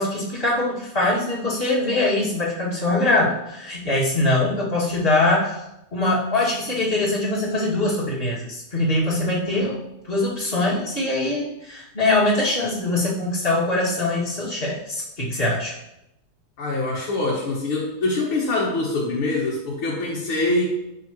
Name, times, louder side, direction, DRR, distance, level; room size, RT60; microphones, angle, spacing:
voice 1, 0.0-5.6 5.9-9.8 10.0-15.7, left 2 dB, 25° left, -6 dB, 2.5 m, -22 dB
voice 2, 16.6-20.6, left 2 dB, 80° left, -5 dB, 2.5 m, -24 dB
11.0 x 6.7 x 3.1 m, 0.86 s
omnidirectional pair, 2.3 m